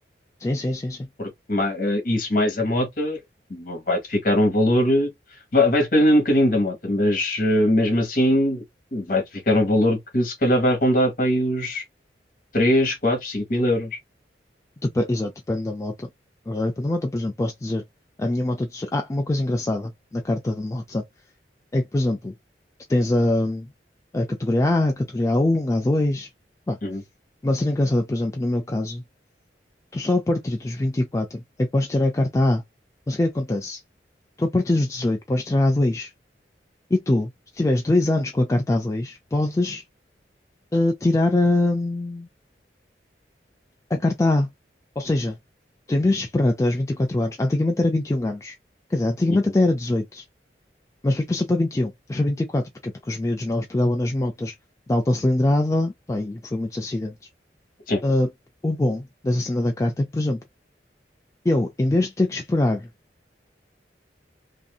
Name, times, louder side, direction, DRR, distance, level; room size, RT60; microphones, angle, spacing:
voice 1, 0.4-1.1 14.8-16.1 16.5-17.8 18.2-21.0 21.7-22.3 22.9-23.7 24.1-26.3 26.7-26.8 27.4-29.0 29.9-32.6 33.1-33.8 34.4-36.1 36.9-39.8 40.7-42.3 43.9-44.5 45.0-45.4 45.9-48.6 48.9-50.2 51.0-54.5 54.9-57.1 58.0-58.3 58.6-60.4 61.5-62.9, left 1 dB, 15° left, 0.3 m, -23 dB
voice 2, 1.2-3.2 3.5-5.1 5.5-8.6 8.9-11.8 12.5-14.0 26.8-27.0 49.3-49.4 57.9-58.0, left 1 dB, 50° left, 1.2 m, -21 dB
2.6 x 2.6 x 2.3 m
head